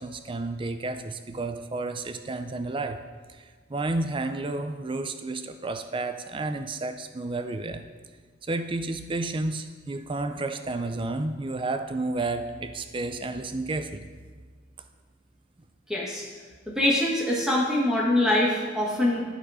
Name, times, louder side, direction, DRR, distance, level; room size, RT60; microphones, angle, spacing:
voice 1, 0.0-3.0 3.3-7.9 8.4-14.1 14.8-14.9, right 2 dB, 25° right, 9 dB, 0.4 m, -31 dB
voice 2, 15.9-16.2 16.7-19.2, left 1 dB, 5° right, -5 dB, 1.5 m, -24 dB
12.0 x 4.2 x 4.9 m, 1.5 s
head